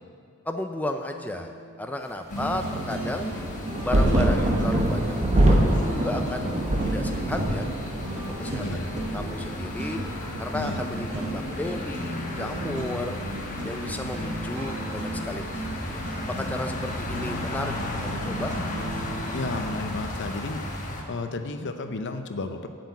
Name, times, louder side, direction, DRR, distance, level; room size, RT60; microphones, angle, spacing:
voice 1, 0.5-1.5 1.8-3.3 3.8-6.5 6.8-7.7 8.1-10.0 10.4-13.2 13.6-16.0 16.3-18.5, left 1 dB, 5° left, 5 dB, 0.4 m, -33 dB
sound 1, 1.0-19.8, right 1 dB, 55° right, 1.8 m, -36 dB
voice 2, 2.3-2.8 8.6-8.9 10.5-11.1 16.4-16.5 19.3-22.7, left 2 dB, 55° left, 7 dB, 0.7 m, -33 dB
sound 2, 2.3-21.0, left 1 dB, 40° left, 1.2 m, -35 dB
sound 3, 3.3-12.4 12.7-13.6 14.5-14.6, right 1 dB, 35° right, 1.1 m, -26 dB
8.0 x 6.5 x 8.2 m, 2.3 s
head